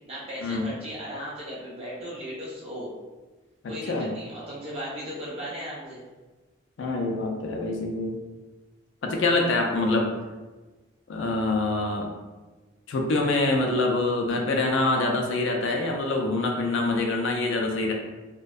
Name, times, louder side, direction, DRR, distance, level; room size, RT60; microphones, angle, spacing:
voice 1, 0.1-2.9 3.7-6.0, equal, 30° right, -7 dB, 0.7 m, -36 dB
voice 2, 3.6-4.1 6.8-8.1 9.0-10.1 11.1-12.1 12.9-17.9, left 2 dB, 65° left, 1 dB, 0.3 m, -25 dB
2.6 x 2.1 x 2.2 m, 1.2 s
head